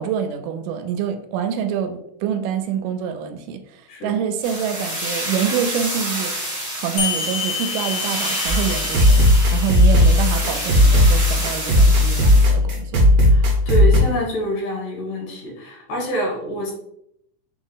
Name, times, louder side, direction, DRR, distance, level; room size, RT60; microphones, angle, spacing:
voice 1, 0.0-6.4 6.8-9.2 9.5-13.1, right 8 dB, 85° right, 2.1 m, -26 dB
sound 1, 4.4-12.4, right 1 dB, 35° left, 0.5 m, -28 dB
sound 2, 7.0-12.0, left 7 dB, 90° left, 1.4 m, -31 dB
sound 3, 8.5-14.0, left 1 dB, 65° right, 1.3 m, -15 dB
voice 2, 13.2-16.7, equal, 75° left, 2.7 m, -27 dB
6.0 x 2.0 x 3.8 m
omnidirectional pair, 3.8 m